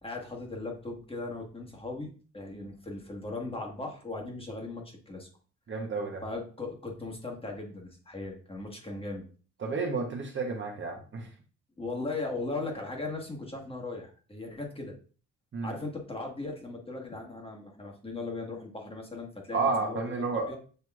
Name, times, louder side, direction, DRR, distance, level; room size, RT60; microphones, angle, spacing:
voice 1, 0.0-5.3 6.2-9.2 11.8-14.9 15.6-20.6, left 2 dB, 20° left, 0 dB, 1.4 m, -38 dB
voice 2, 5.7-6.2 9.6-11.3 15.5-15.8 19.5-20.5, right 4 dB, 40° right, 3 dB, 1.0 m, -31 dB
7.8 x 2.9 x 2.4 m, 0.39 s
cardioid pair, 90°, 30 cm